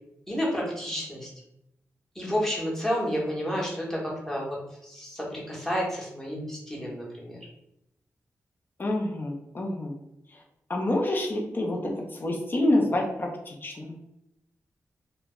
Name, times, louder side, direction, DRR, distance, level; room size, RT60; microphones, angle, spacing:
voice 1, 0.3-1.3 2.1-4.6 4.8-7.5, equal, 5° left, -4 dB, 1.0 m, -30 dB
voice 2, 8.8-10.0 10.3-10.4 10.7-13.9, left 1 dB, 40° left, 0 dB, 0.5 m, -27 dB
2.2 x 2.0 x 3.6 m, 0.84 s
cardioid pair, 80°, 5 cm